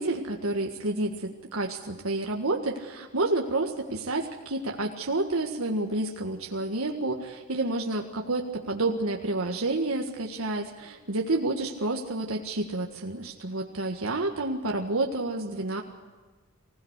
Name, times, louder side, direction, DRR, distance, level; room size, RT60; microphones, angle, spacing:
voice 1, 0.0-15.8, right 2 dB, 85° right, 2 dB, 1.8 m, -29 dB
24.5 x 17.0 x 8.2 m, 1.4 s
head